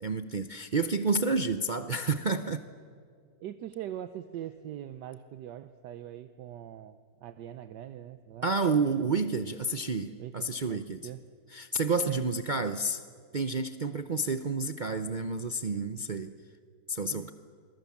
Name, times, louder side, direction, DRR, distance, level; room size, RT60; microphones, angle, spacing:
voice 1, 0.0-2.6 8.4-11.1 11.5-13.0 13.3-16.3 16.9-17.3, right 3 dB, 55° right, 9 dB, 0.5 m, -30 dB
voice 2, 3.4-8.5 9.0-9.2 10.2-11.2 12.1-12.2 17.1-17.3, right 11 dB, 80° right, 11 dB, 1.4 m, -42 dB
28.0 x 22.0 x 7.2 m, 2.2 s
omnidirectional pair, 1.8 m